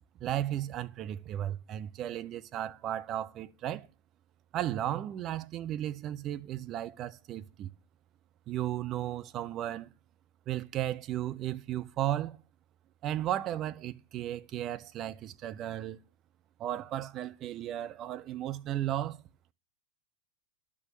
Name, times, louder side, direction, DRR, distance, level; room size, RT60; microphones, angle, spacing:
voice 1, 0.2-3.9 4.5-7.7 8.5-9.9 10.5-12.4 13.0-16.0 16.6-19.2, right 12 dB, 35° right, 0.7 m, -35 dB
12.0 x 6.3 x 8.2 m
figure-of-eight pair, 90°, 0 cm